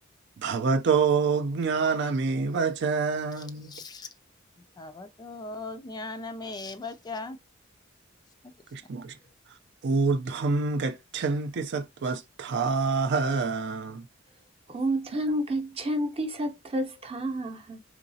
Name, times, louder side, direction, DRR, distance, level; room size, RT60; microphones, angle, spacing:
voice 1, 0.4-3.7 8.7-9.1 9.8-14.1, right 4 dB, 60° right, 0.4 m, -26 dB
voice 2, 3.3-4.1 4.8-7.4 8.4-8.5 9.2-9.3, left 3 dB, 20° left, 0.3 m, -39 dB
voice 3, 14.7-17.8, right 1 dB, 30° right, 0.7 m, -30 dB
3.9 x 3.1 x 2.6 m
head